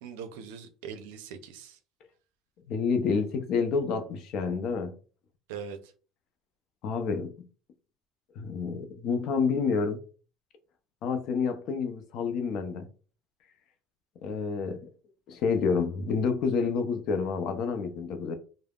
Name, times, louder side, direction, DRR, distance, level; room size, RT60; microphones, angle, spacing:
voice 1, 0.0-1.8 5.5-5.9, right 7 dB, 90° right, 0.4 m, -41 dB
voice 2, 2.7-4.9 6.8-7.5 8.4-10.0 11.0-12.9 14.2-14.8 15.3-18.3, left 5 dB, 65° left, 0.5 m, -29 dB
3.4 x 2.0 x 2.3 m
supercardioid pair, 95°, 0 cm